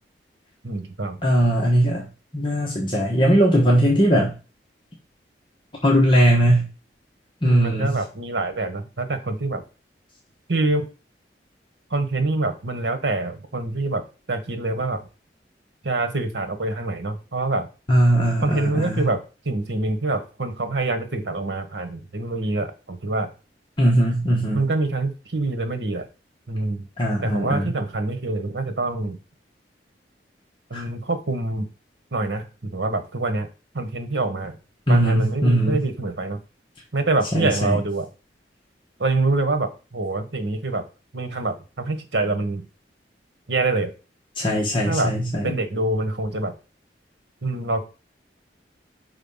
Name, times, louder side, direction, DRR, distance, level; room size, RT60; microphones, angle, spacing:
voice 1, 0.6-1.2 3.2-3.4 7.4-9.6 10.5-10.9 11.9-14.0 14.3-15.0 15.8-17.7 18.4-19.2 19.4-23.3 24.5-26.1 26.5-26.8 27.2-29.2 30.7-31.7 32.1-33.5 33.7-34.6 34.9-36.4 36.9-38.1 39.0-40.8 41.1-42.6 43.5-43.9 44.9-45.1 45.4-46.5 47.4-47.8, right 2 dB, 80° right, 8 dB, 1.3 m, -25 dB
voice 2, 1.2-2.1 2.3-4.3 5.8-6.7 7.4-8.0 17.9-19.1 23.8-24.6 27.0-27.7 30.7-30.8 34.9-35.8 37.3-37.8 44.4-45.5, equal, 30° left, -3 dB, 1.3 m, -19 dB
5.7 x 4.2 x 5.6 m, 0.33 s
head